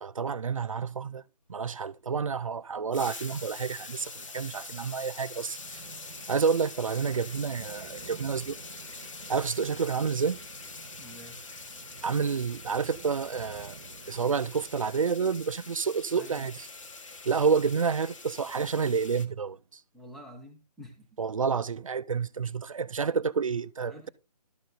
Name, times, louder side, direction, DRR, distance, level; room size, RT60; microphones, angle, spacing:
voice 1, 0.0-1.2 1.5-5.8 6.3-8.6 9.3-10.4 12.0-13.8 14.1-16.7 17.3-19.6 21.2-24.1, right 5 dB, 55° right, 0.5 m, -29 dB
sound 1, 2.6-17.6, right 6 dB, 35° right, 1.0 m, -52 dB
sound 2, 2.9-19.3, left 4 dB, 50° left, 1.1 m, -44 dB
voice 2, 11.0-11.4 16.1-16.5 19.9-21.1 23.8-24.1, equal, ahead, 0.6 m, -48 dB
12.0 x 6.3 x 3.8 m
figure-of-eight pair, 150°, 21 cm